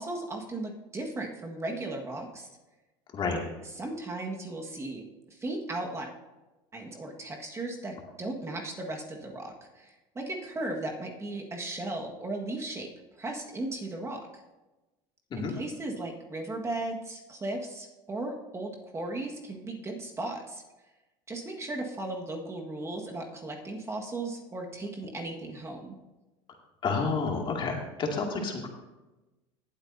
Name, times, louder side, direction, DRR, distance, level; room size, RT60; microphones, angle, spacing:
voice 1, 0.0-2.5 3.8-5.0 5.3-6.1 6.7-12.9 13.2-14.4 15.3-20.6 21.3-26.0, right 2 dB, 20° right, 1 dB, 1.7 m, -36 dB
voice 2, 3.1-3.5 15.3-15.5 26.8-28.7, left 4 dB, 40° left, 1 dB, 2.4 m, -30 dB
18.5 x 8.2 x 2.8 m, 1.1 s
supercardioid pair, 100°, 13 cm